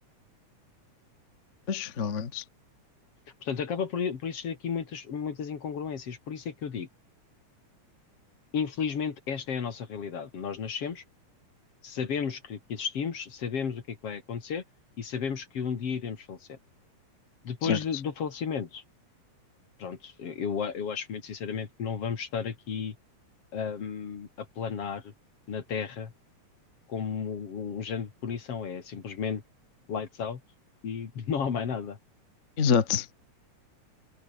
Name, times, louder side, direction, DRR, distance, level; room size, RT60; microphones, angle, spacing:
voice 1, 1.7-2.4 17.6-17.8 32.6-33.1, left 6 dB, 35° left, 1.2 m, -26 dB
voice 2, 3.4-6.9 8.5-11.0 11.8-14.6 15.0-16.6 17.4-18.8 19.8-23.0 23.5-25.1 25.5-26.1 26.9-29.4 29.9-30.4 30.8-32.0, left 6 dB, 55° left, 3.3 m, -33 dB
omnidirectional pair, 3.4 m